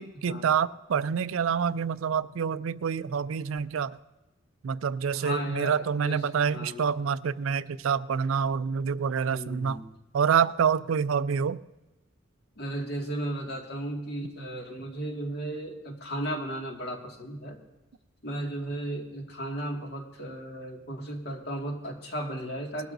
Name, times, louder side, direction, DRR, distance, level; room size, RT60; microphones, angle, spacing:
voice 1, 0.0-4.0 4.6-9.8 10.1-11.6, right 6 dB, 85° right, 16 dB, 0.4 m, -27 dB
voice 2, 5.1-6.2 6.5-6.8 9.2-9.8 12.6-17.6 18.2-22.9, right 1 dB, 55° left, 1 dB, 2.0 m, -35 dB
20.0 x 12.5 x 2.6 m, 1.1 s
head